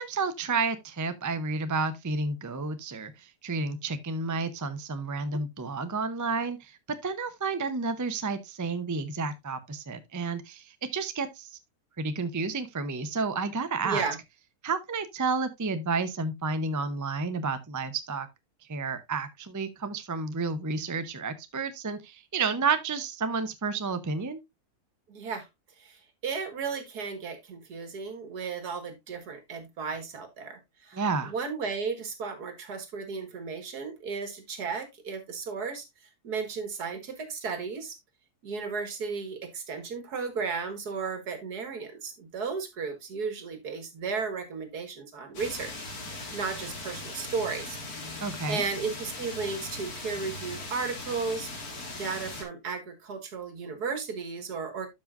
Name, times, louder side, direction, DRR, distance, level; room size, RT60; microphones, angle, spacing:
voice 1, 0.0-6.8 7.0-11.6 12.0-14.0 14.6-18.3 18.7-24.4 30.9-31.3 48.2-48.6, right 4 dB, 25° right, 0.4 m, -31 dB
voice 2, 13.8-14.2 25.1-25.5 25.8-35.9 36.2-38.0 38.4-45.7 46.3-47.8 48.5-51.5 52.0-54.9, right 5 dB, 80° right, 2.2 m, -34 dB
sound 1, 45.3-52.4, left 2 dB, 70° left, 2.4 m, -39 dB
12.0 x 5.4 x 2.5 m
omnidirectional pair, 1.6 m